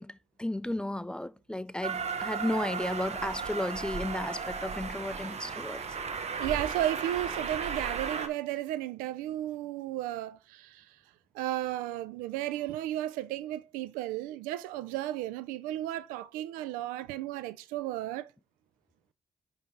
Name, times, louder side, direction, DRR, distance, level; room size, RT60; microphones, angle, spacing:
voice 1, 0.0-5.8, left 1 dB, 5° left, 0.4 m, -34 dB
Train, 1.8-8.3, right 5 dB, 50° right, 1.1 m, -35 dB
voice 2, 6.4-11.0 11.3-18.3, right 13 dB, 85° right, 0.4 m, -34 dB
10.0 x 3.5 x 3.7 m
hypercardioid pair, 40°, 14 cm